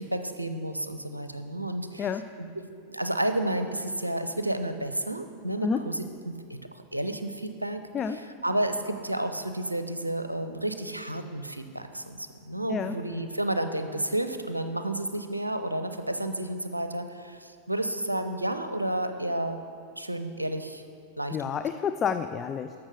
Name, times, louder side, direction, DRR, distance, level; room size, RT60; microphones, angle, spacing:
voice 1, 0.0-2.1 2.4-7.8 8.1-19.6 20.0-20.8 21.2-21.5, right 1 dB, 85° right, 8 dB, 0.6 m, -31 dB
voice 2, 21.3-22.7, left 7 dB, 25° left, 9 dB, 0.4 m, -29 dB
13.5 x 5.9 x 6.4 m, 2.3 s
figure-of-eight pair, 90°, 0 cm